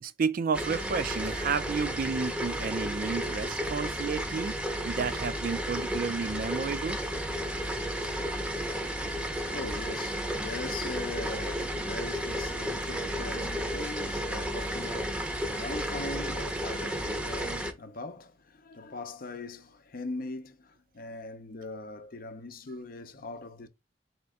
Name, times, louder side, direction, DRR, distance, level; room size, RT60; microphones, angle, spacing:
voice 1, 0.0-4.6 4.8-7.0 7.8-7.9, right 5 dB, 50° right, 0.4 m, -31 dB
sound 1, 0.5-17.7, equal, 5° right, 0.6 m, -33 dB
voice 2, 8.7-23.7, left 3 dB, 50° left, 0.6 m, -41 dB
4.3 x 2.8 x 3.5 m
head